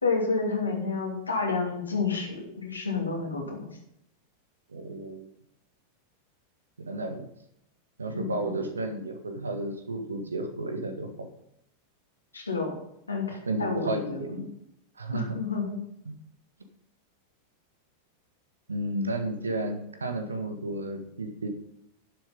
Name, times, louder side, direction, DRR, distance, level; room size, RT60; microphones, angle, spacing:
voice 1, 0.0-3.7 8.1-8.4 12.3-12.7 13.1-14.4 15.1-15.7, left 4 dB, 80° left, -1 dB, 2.7 m, -30 dB
voice 2, 4.7-5.3 6.8-7.3 8.0-11.3 13.5-14.5 15.0-15.4 16.0-16.1 18.7-21.5, right 2 dB, 75° right, 7 dB, 1.7 m, -32 dB
11.5 x 7.3 x 5.3 m, 0.76 s
figure-of-eight pair, 90°, 0 cm